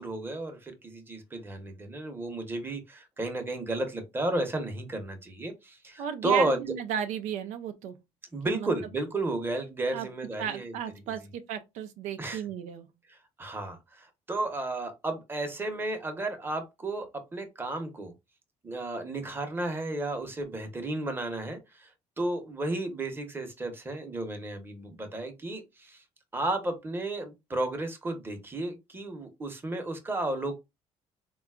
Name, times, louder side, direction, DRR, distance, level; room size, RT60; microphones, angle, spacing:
voice 1, 0.0-6.6 8.3-10.7 11.1-11.2 12.2-12.4 13.1-18.1 18.6-21.9 22.2-26.0 26.3-30.6, right 2 dB, 20° right, 0.8 m, -33 dB
voice 2, 6.0-8.0 8.4-8.7 9.9-10.1 10.4-12.9, right 8 dB, 85° right, 0.5 m, -34 dB
3.8 x 2.3 x 2.3 m
cardioid pair, 110°, 12 cm